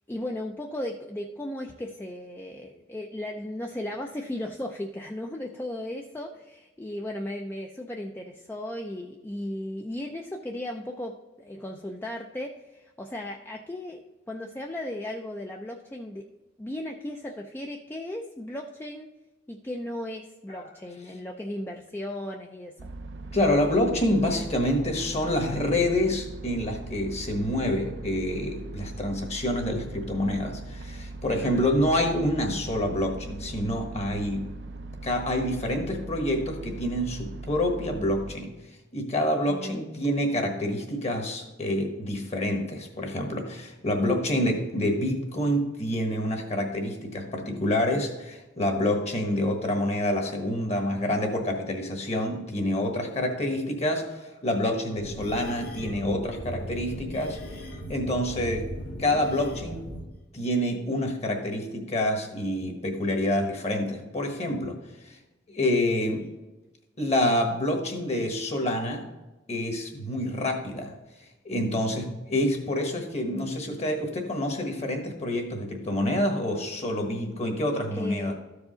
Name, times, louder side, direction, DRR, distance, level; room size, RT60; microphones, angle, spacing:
voice 1, 0.1-14.0 14.3-16.2 16.6-19.1 19.5-22.7 31.4-31.7 39.5-39.8 66.1-66.2 77.9-78.3, left 1 dB, 10° left, 1 dB, 0.4 m, -36 dB
sound 1, 22.8-38.4, right 2 dB, 65° right, 0.5 m, -40 dB
voice 2, 23.3-34.5 35.0-38.5 38.9-57.6 57.9-58.7 59.0-59.9 60.3-64.8 65.0-65.2 65.5-66.3 67.0-69.1 69.5-70.9 71.4-78.3, left 1 dB, 35° left, 3 dB, 1.3 m, -27 dB
sound 2, 55.0-60.1, equal, 55° left, 1.1 m, -38 dB
13.5 x 4.8 x 3.8 m, 1.1 s
head